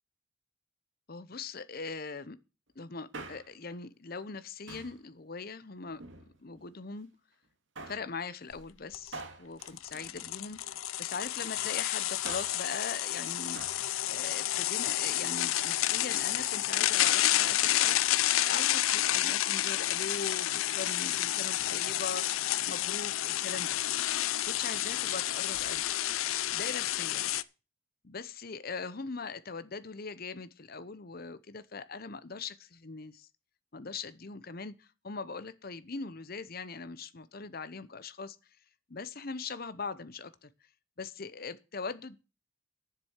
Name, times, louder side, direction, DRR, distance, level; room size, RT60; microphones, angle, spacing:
voice 1, 1.1-2.4 2.8-6.0 6.4-7.1 7.9-13.6 14.1-18.0 18.4-23.8 24.4-25.9 26.5-27.2 28.0-33.3 33.7-38.4 38.9-40.5 41.0-42.2, left 4 dB, 45° left, 0.8 m, -41 dB
Male speech man speaking, 2.9-3.7 4.7-5.0 5.9-6.7 7.7-8.1 9.1-10.8 12.0-12.7 13.5-13.9 14.2-14.3, right 3 dB, 60° right, 2.1 m, -46 dB
sound 1, 8.5-8.6 8.9-9.1 9.6-27.4, left 14 dB, 75° left, 0.5 m, -30 dB
9.6 x 7.7 x 7.3 m
head